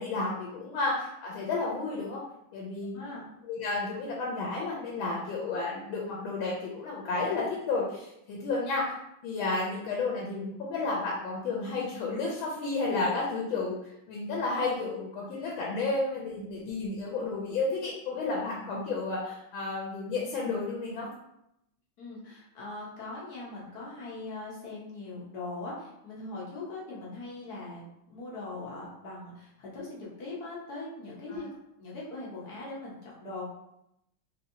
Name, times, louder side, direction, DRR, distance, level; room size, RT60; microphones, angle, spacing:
voice 1, 0.0-2.2 2.5-3.2 3.5-8.8 9.2-21.1 31.3-31.4, left 3 dB, 90° left, -3 dB, 1.4 m, -32 dB
voice 2, 22.0-27.8 28.1-31.5 31.8-33.5, left 2 dB, 60° left, -6 dB, 1.3 m, -40 dB
3.4 x 2.8 x 2.6 m, 0.82 s
omnidirectional pair, 2.1 m